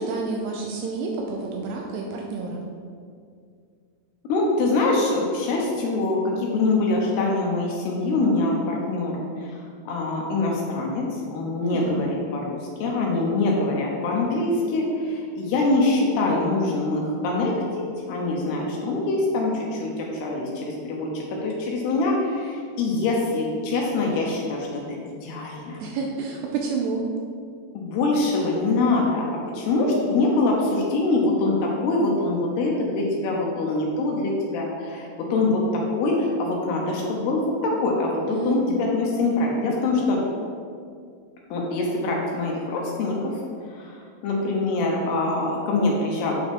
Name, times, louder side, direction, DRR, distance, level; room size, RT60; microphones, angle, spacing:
voice 1, 0.0-2.6 11.6-12.1 25.8-27.0 38.3-38.8, right 4 dB, 85° right, 0 dB, 2.5 m, -29 dB
voice 2, 4.3-9.6 9.9-24.8 25.2-25.8 27.7-40.2 41.5-43.4 43.7-46.4, left 2 dB, 75° left, -2 dB, 2.7 m, -24 dB
9.1 x 6.8 x 3.5 m, 2.2 s
omnidirectional pair, 5.3 m